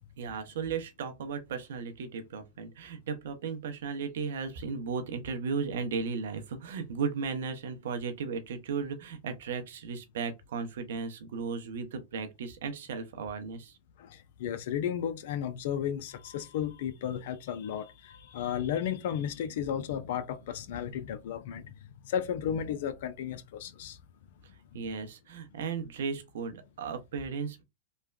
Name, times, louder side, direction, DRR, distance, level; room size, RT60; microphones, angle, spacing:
voice 1, 0.2-13.8 24.7-27.6, right 5 dB, 70° right, 0.6 m, -35 dB
voice 2, 14.0-21.7 22.0-24.0, left 9 dB, 65° left, 0.4 m, -34 dB
3.2 x 2.2 x 2.3 m
hypercardioid pair, 110°, 0 cm